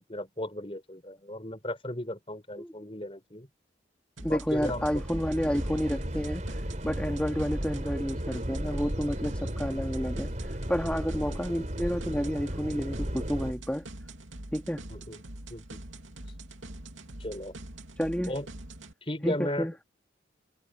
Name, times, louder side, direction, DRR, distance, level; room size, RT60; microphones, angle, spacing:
voice 1, 0.0-3.5 4.2-5.0 14.9-15.2 15.5-15.8 17.2-17.5 18.3-18.5 19.0-19.7, left 1 dB, 30° left, 4.4 m, -36 dB
voice 2, 4.2-13.8 14.5-14.8 18.0-18.3 19.2-19.7, equal, 5° left, 2.4 m, -30 dB
sound 1, 4.2-18.9, right 1 dB, 90° right, 3.1 m, -44 dB
sound 2, 4.5-13.5, equal, 40° right, 4.3 m, -35 dB
head